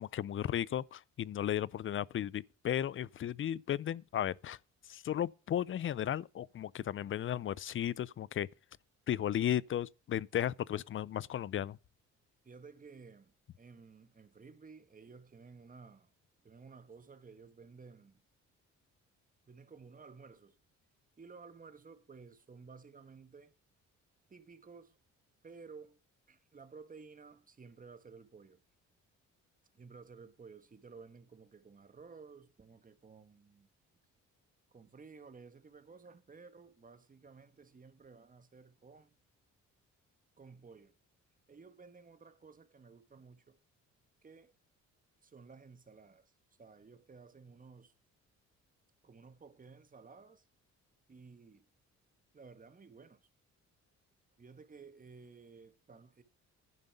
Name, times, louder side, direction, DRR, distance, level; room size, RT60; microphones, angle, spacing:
voice 1, 0.0-4.6 4.9-8.5 9.1-11.8, left 10 dB, 45° left, 0.5 m, -35 dB
voice 2, 12.4-16.1 16.4-18.2 19.5-20.6 21.2-23.5 24.3-25.0 25.4-26.0 26.3-28.6 29.7-33.7 34.7-39.1 40.4-41.0 41.5-43.6 44.2-44.5 45.2-46.3 46.6-47.9 49.0-50.5 51.1-51.6 52.3-53.2 54.4-56.2, right 4 dB, 25° right, 1.4 m, -55 dB
11.0 x 5.3 x 7.8 m
cardioid pair, 90°, 30 cm